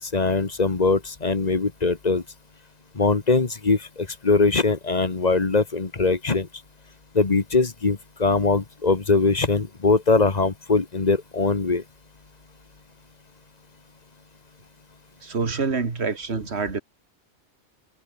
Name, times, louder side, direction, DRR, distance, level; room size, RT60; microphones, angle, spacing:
voice 1, 0.0-2.2 2.9-6.5 7.1-11.8, left 3 dB, 35° left, 1.5 m, -22 dB
voice 2, 15.2-16.8, right 4 dB, 65° right, 2.2 m, -26 dB
omnidirectional pair, 1.2 m